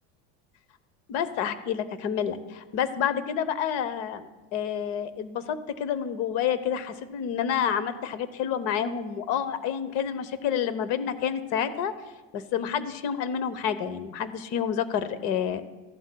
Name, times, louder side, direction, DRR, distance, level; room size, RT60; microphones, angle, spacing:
voice 1, 1.1-11.9 12.3-15.7, left 8 dB, 50° left, 13 dB, 0.8 m, -29 dB
15.0 x 11.5 x 2.2 m, 1.2 s
cardioid pair, 160°, 30 cm